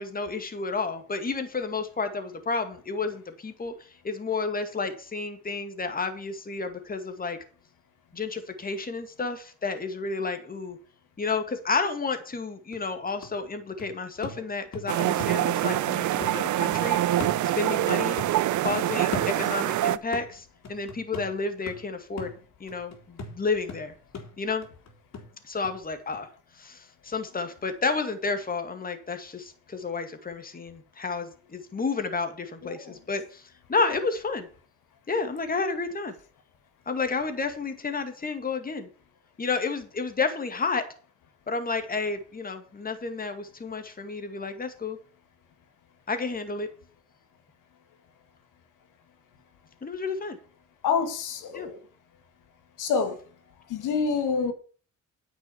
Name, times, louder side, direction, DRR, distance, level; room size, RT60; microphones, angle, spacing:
voice 1, 0.0-3.7 4.0-7.4 8.1-10.8 11.2-17.3 17.6-18.2 18.6-22.3 22.6-23.9 24.4-24.7 25.4-26.3 26.6-34.5 35.1-36.1 36.9-38.9 39.4-40.8 41.5-45.0 46.1-46.7 49.8-50.4 51.5-51.7, left 4 dB, 30° left, 2.1 m, -31 dB
sound 1, 12.3-12.4 12.7-15.9 16.2-17.9 18.2-19.8 20.1-25.8 26.1-26.2, left 3 dB, 60° left, 3.5 m, -40 dB
sound 2, 14.9-20.0, right 13 dB, 70° right, 0.7 m, -25 dB
voice 2, 32.6-32.9 50.8-51.8 52.8-53.2 53.7-54.5, left 5 dB, 90° left, 2.2 m, -27 dB
9.6 x 6.3 x 7.2 m
cardioid pair, 90°, 30 cm